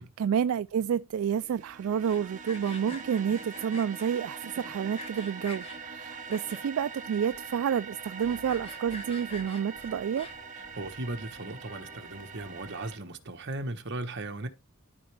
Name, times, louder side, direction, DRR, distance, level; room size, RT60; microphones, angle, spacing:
voice 1, 0.0-10.3, right 8 dB, 75° right, 0.3 m, -29 dB
sound 1, 1.1-13.0, right 5 dB, 40° right, 1.2 m, -43 dB
Sawing, 1.9-4.1 4.6-5.8 6.3-6.9 7.3-7.4 7.6-7.7 8.1-10.6, left 2 dB, 25° left, 1.6 m, -46 dB
sound 2, 7.3-13.4, left 1 dB, 80° left, 2.0 m, -56 dB
voice 2, 10.7-14.5, right 2 dB, 55° right, 1.2 m, -37 dB
13.0 x 4.4 x 3.3 m
head